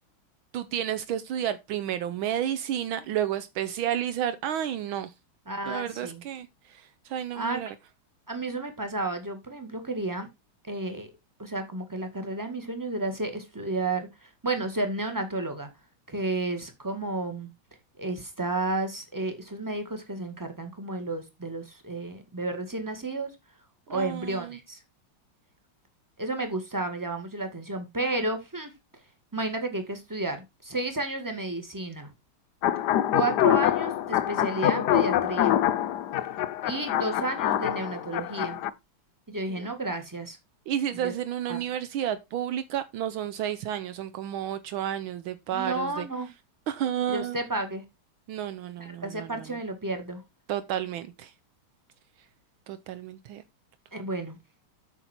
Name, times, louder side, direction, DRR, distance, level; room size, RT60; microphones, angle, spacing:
voice 1, 0.5-5.1 5.7-7.7 23.9-24.6 39.6-39.7 40.7-46.1 46.7-47.4 48.3-49.5 50.5-51.3 52.7-53.4, right 10 dB, 75° right, 1.5 m, -31 dB
voice 2, 5.5-6.2 7.3-7.6 8.3-10.3 10.6-11.1 11.4-15.7 16.1-17.5 18.0-23.4 23.9-24.8 26.2-28.7 29.3-32.1 33.1-35.6 36.6-38.6 39.3-40.4 40.9-41.1 41.5-41.6 45.5-46.3 47.1-47.8 48.8-50.2 53.9-54.4, right 2 dB, 10° right, 1.8 m, -32 dB
sound 1, 32.6-38.7, left 12 dB, 65° left, 1.1 m, -25 dB
8.3 x 6.9 x 4.4 m
omnidirectional pair, 2.3 m